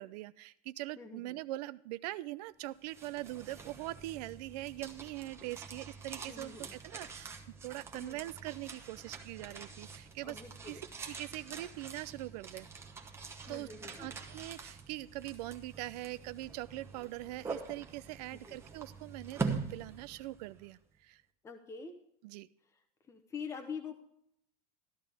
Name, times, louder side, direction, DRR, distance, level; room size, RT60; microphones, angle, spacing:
voice 1, 0.0-7.3 7.6-10.4 10.7-12.7 13.5-13.7 14.0-21.2 22.2-22.5, right 17 dB, 90° right, 15 dB, 0.5 m, -42 dB
voice 2, 1.0-1.4 6.3-6.7 7.9-8.2 10.2-10.8 13.5-14.1 18.5-18.6 21.4-21.9 23.1-24.0, left 5 dB, 15° left, 4 dB, 0.8 m, -45 dB
sound 1, 2.7-20.7, right 4 dB, 10° right, 1.0 m, -44 dB
13.5 x 11.5 x 3.5 m, 0.72 s
cardioid pair, 170°, 20 cm